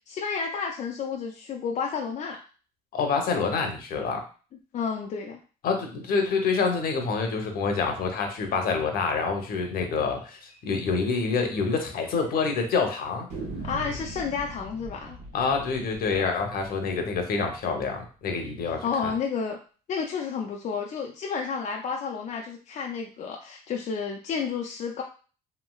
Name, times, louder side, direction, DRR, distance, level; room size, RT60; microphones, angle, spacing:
voice 1, 0.1-2.4 4.7-5.4 13.6-15.2 18.6-19.6 19.9-25.0, left 6 dB, 45° left, 0 dB, 0.4 m, -31 dB
voice 2, 2.9-4.2 5.6-13.3 15.3-19.1, left 5 dB, 60° left, 4 dB, 0.8 m, -27 dB
sound 1, 10.5-10.6 10.9-11.0 11.3-11.4 12.1-12.6 13.3-18.1, right 2 dB, 85° right, 1.1 m, -41 dB
3.1 x 2.8 x 2.3 m, 0.38 s
cardioid pair, 110°, 17 cm